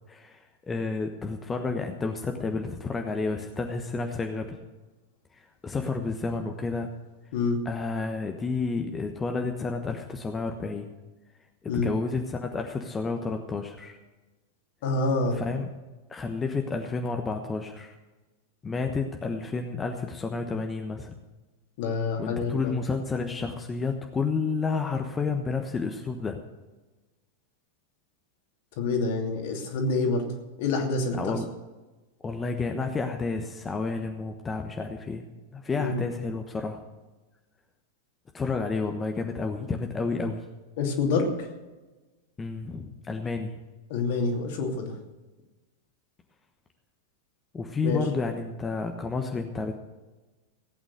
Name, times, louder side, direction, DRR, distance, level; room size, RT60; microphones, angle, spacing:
voice 1, 0.1-4.6 5.3-6.9 7.6-10.9 11.6-14.0 15.3-15.7 16.1-17.9 18.6-21.1 22.2-26.4 31.1-31.5 32.2-35.2 35.5-36.8 38.3-40.4 42.4-43.6 47.5-49.8, left 4 dB, 15° left, 4 dB, 1.2 m, -30 dB
voice 2, 14.8-15.4 21.8-22.7 28.8-30.3 30.6-31.3 35.8-36.0 40.8-41.5 43.9-44.9 47.8-48.0, left 3 dB, 50° left, 2 dB, 2.7 m, -27 dB
17.0 x 9.0 x 6.4 m, 1.2 s
figure-of-eight pair, 90°, 0 cm